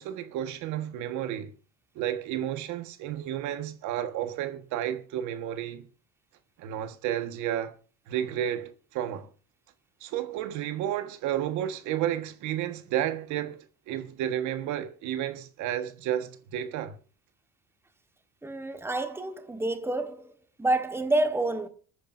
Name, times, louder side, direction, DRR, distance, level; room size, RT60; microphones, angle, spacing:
voice 1, 0.0-1.5 1.9-5.9 6.6-7.7 8.1-9.3 10.0-13.6 13.9-17.0, right 11 dB, 80° right, 1.5 m, -31 dB
voice 2, 18.4-20.3 20.6-21.7, right 2 dB, 10° right, 1.4 m, -28 dB
26.5 x 9.6 x 2.6 m
cardioid pair, 120°, 29 cm